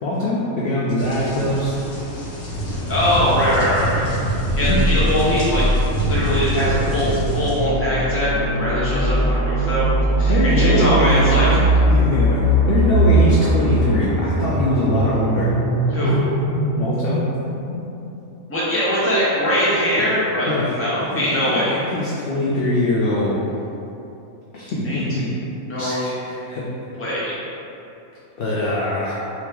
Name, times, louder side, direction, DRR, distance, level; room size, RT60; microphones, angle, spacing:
voice 1, 0.0-1.8 4.6-4.9 10.3-11.5 11.9-15.5 16.0-16.1 16.8-17.2 20.5-20.7 21.1-23.4 24.5-25.3 25.8-26.6 28.4-29.1, left 1 dB, 70° left, -6 dB, 0.5 m, -22 dB
sound 1, 1.0-7.6, equal, 90° left, 1.2 m, -26 dB
voice 2, 2.9-4.0 4.5-5.7 6.0-9.9 10.2-11.6 15.9-16.2 18.5-21.8 24.8-25.0 25.7-26.1 27.0-27.3, equal, 15° left, -9 dB, 0.5 m, -21 dB
sound 2, 4.5-18.2, right 1 dB, 60° right, 0.8 m, -20 dB
2.9 x 2.8 x 3.5 m, 2.8 s
omnidirectional pair, 1.5 m